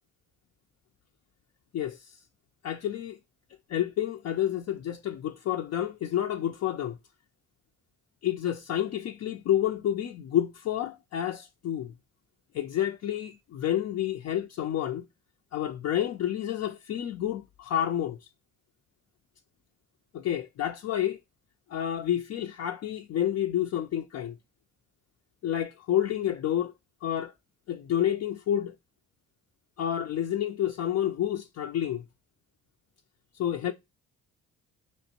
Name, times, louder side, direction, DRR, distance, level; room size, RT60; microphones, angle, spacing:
voice 1, 1.7-2.2 2.6-3.2 3.7-7.0 8.2-11.9 12.5-15.0 15.5-18.2 20.1-21.2 21.7-24.4 25.4-26.7 27.0-27.3 27.7-28.7 29.8-32.0 33.3-33.7, left 11 dB, 55° left, 0.5 m, -29 dB
4.2 x 3.1 x 2.8 m
cardioid pair, 90°, 30 cm